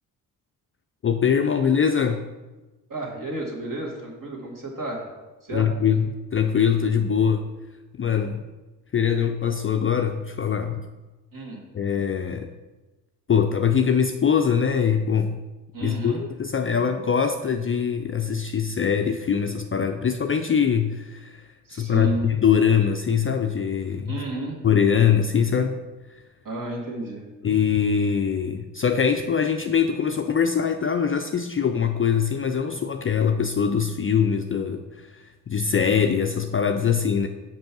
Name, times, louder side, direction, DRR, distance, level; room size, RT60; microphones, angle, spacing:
voice 1, 1.0-2.2 5.5-6.1 6.3-7.5 8.0-8.4 8.9-10.8 11.7-12.5 13.3-15.4 15.8-21.4 21.7-24.2 24.6-25.8 27.4-37.3, left 7 dB, 30° left, 6 dB, 0.5 m, -22 dB
voice 2, 2.9-5.1 5.4-5.7 11.3-11.6 15.7-16.2 21.7-22.2 24.1-24.6 26.4-27.2, right 2 dB, 45° right, -1 dB, 2.2 m, -32 dB
5.4 x 5.2 x 6.0 m, 1.1 s
hypercardioid pair, 40°, 47 cm